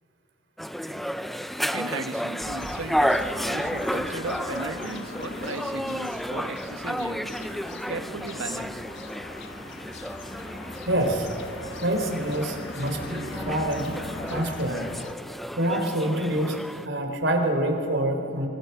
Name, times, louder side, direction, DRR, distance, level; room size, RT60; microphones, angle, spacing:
sound 1, 0.6-16.9, equal, ahead, 0.5 m, -32 dB
voice 1, 1.7-7.4 7.9-8.8, right 3 dB, 90° right, 8 dB, 1.5 m, -36 dB
sound 2, 2.4-15.1, left 2 dB, 60° left, 1.5 m, -40 dB
voice 2, 10.9-11.3 11.8-14.0 14.3-14.9 15.5-18.5, right 1 dB, 65° right, 4 dB, 3.9 m, -26 dB
25.5 x 25.0 x 5.8 m, 2.6 s
head